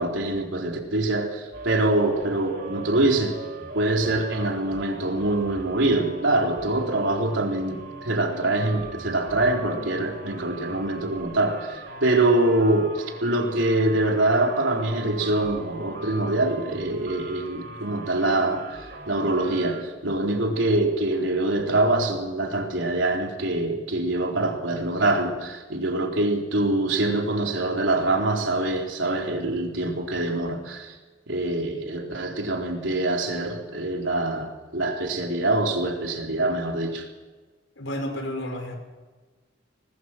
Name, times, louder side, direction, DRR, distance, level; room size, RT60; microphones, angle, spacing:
voice 1, 0.0-3.4 3.7-31.0 31.3-37.1, right 2 dB, 75° right, 4.0 m, -24 dB
sound 1, 1.5-19.8, right 3 dB, 60° right, 3.1 m, -40 dB
voice 2, 37.8-38.8, equal, 85° left, 5.6 m, -31 dB
21.0 x 21.0 x 6.1 m
head